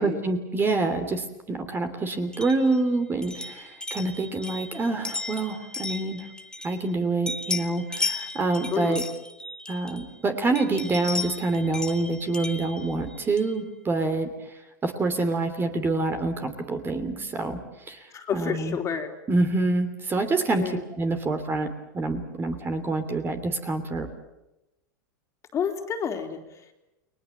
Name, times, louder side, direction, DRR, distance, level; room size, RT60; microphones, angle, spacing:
voice 1, 0.0-6.3 6.6-9.0 9.7-14.3 14.8-17.6 17.9-18.1 18.3-18.8 19.3-21.7 21.9-24.1, right 3 dB, 20° right, 8 dB, 3.0 m, -26 dB
sound 1, 2.3-7.0 7.3-10.2 10.6-13.6, left 3 dB, 5° left, 1.6 m, -35 dB
voice 2, 8.7-9.0 18.1-19.1 20.6-20.8 25.5-26.7, left 7 dB, 30° left, 4 dB, 3.5 m, -30 dB
30.0 x 21.0 x 7.3 m, 0.95 s
hypercardioid pair, 115°, 10 cm